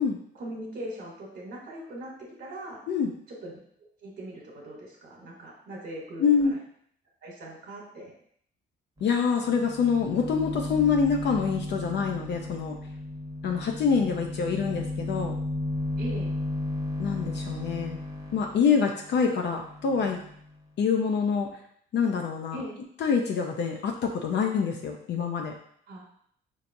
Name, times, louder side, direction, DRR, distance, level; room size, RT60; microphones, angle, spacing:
voice 1, 0.3-2.1 2.4-2.8 3.4-3.5 4.0-6.6 7.2-8.1 16.0-16.3 22.5-22.8 25.9-26.1, right 1 dB, 60° right, -3 dB, 1.1 m, -40 dB
voice 2, 6.2-6.5 9.0-12.8 13.4-15.3 17.0-18.0 18.3-20.2 20.8-21.5 21.9-22.6 23.0-25.5, left 6 dB, 60° left, 2 dB, 0.5 m, -26 dB
sound 1, 9.0-9.1 9.4-20.5, left 2 dB, 15° right, 1.0 m, -34 dB
4.5 x 2.6 x 2.6 m, 0.64 s
cardioid pair, 90°, 20 cm